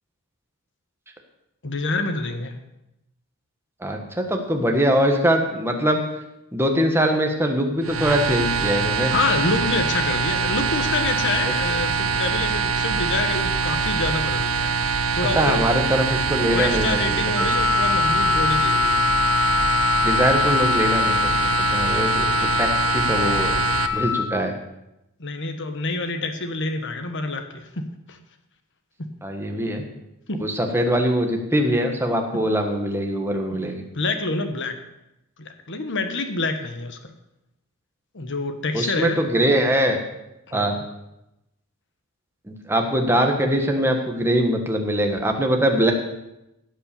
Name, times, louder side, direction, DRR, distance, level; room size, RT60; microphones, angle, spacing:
voice 1, 1.6-2.6 9.1-15.6 16.5-19.1 25.2-28.2 30.3-30.4 33.5-34.7 35.4-37.1 38.1-39.2 40.5-40.8, left 3 dB, 55° left, 7 dB, 1.3 m, -27 dB
voice 2, 3.8-6.0 6.5-9.1 15.3-17.5 20.0-21.3 21.7-23.5 23.9-24.5 29.2-29.8 30.4-33.8 38.7-40.0 40.5-40.8 42.5-45.9, equal, 10° right, 3 dB, 1.4 m, -22 dB
sound 1, 7.8-23.9, right 5 dB, 65° right, 0.9 m, -24 dB
Wind instrument woodwind instrument, 17.4-24.3, left 7 dB, 85° left, 1.7 m, -23 dB
16.0 x 5.6 x 7.0 m, 0.89 s
head